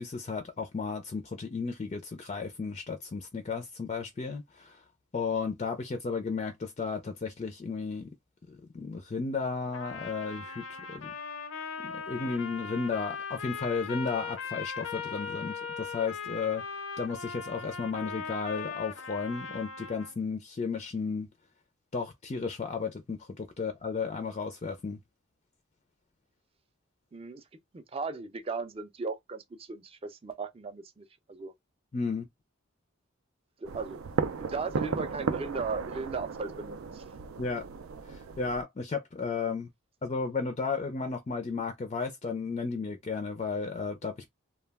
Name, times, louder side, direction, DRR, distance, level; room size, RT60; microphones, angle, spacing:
voice 1, 0.0-4.8 5.1-8.1 8.5-11.1 11.8-16.6 17.0-21.3 21.9-25.0 31.9-32.3 37.4-37.6 38.1-39.7 40.0-44.3, left 4 dB, 35° left, 0.4 m, -34 dB
Trumpet, 9.7-20.1, left 5 dB, 80° left, 0.5 m, -39 dB
voice 2, 27.1-27.4 27.7-31.5 33.6-34.0 34.4-37.0, right 4 dB, 30° right, 0.4 m, -37 dB
sound 1, 33.6-38.6, right 5 dB, 90° right, 0.4 m, -35 dB
2.2 x 2.1 x 3.3 m
head